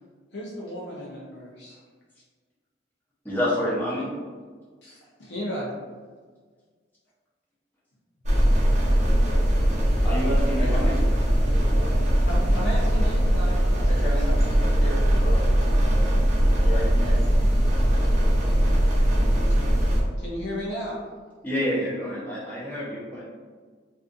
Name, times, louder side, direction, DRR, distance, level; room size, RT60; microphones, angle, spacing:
voice 1, 0.3-1.8 4.8-5.7 12.2-14.5 20.2-21.0, equal, 70° left, -4 dB, 0.5 m, -34 dB
voice 2, 3.2-4.1 10.0-10.9 21.4-23.2, equal, 10° left, -9 dB, 0.7 m, -28 dB
sound 1, 8.2-20.0, equal, 40° right, 0.6 m, -20 dB
voice 3, 10.6-11.0 11.4-11.9 13.9-15.4 16.5-17.3, equal, 35° left, -8 dB, 1.0 m, -34 dB
2.5 x 2.4 x 2.4 m, 1.5 s
head